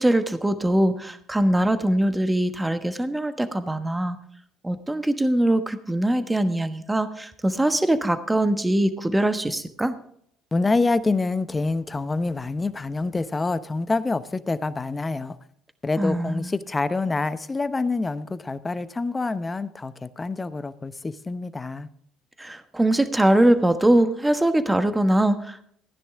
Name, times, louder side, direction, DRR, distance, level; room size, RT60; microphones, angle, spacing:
voice 1, 0.0-4.2 4.6-9.9 16.0-16.5 22.4-25.7, right 1 dB, 10° right, 10 dB, 1.2 m, -22 dB
voice 2, 10.5-15.4 15.8-21.9, left 3 dB, 20° left, 13 dB, 0.9 m, -26 dB
15.0 x 10.0 x 3.7 m, 0.65 s
hypercardioid pair, 65°, 0 cm